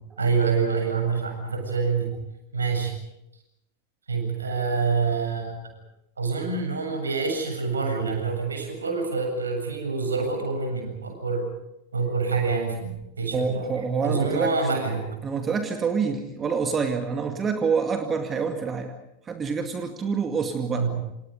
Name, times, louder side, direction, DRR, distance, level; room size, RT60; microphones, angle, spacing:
voice 1, 0.2-2.1 2.5-3.0 4.1-5.6 6.2-11.4 11.9-12.9 13.2-13.7 14.0-15.0 20.7-20.9, right 4 dB, 75° right, 4 dB, 7.7 m, -26 dB
voice 2, 13.3-14.7 15.2-18.9 19.2-20.9, right 5 dB, 20° right, 6 dB, 2.2 m, -27 dB
28.5 x 27.0 x 5.3 m, 0.86 s
figure-of-eight pair, 90°, 0 cm